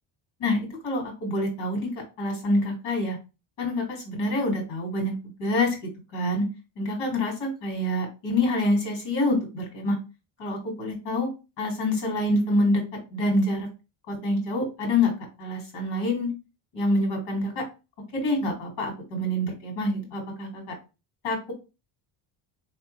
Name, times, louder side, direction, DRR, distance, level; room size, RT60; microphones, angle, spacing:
voice 1, 0.4-1.9 2.2-3.2 3.6-5.1 5.4-5.8 6.1-6.5 6.8-10.0 10.4-11.3 11.6-12.8 13.1-13.7 14.1-15.1 15.4-16.3 16.7-17.6 18.1-20.6 21.2-21.5, left 1 dB, 75° left, 1 dB, 1.9 m, -26 dB
3.6 x 3.1 x 3.1 m, 0.29 s
cardioid pair, 135°, 48 cm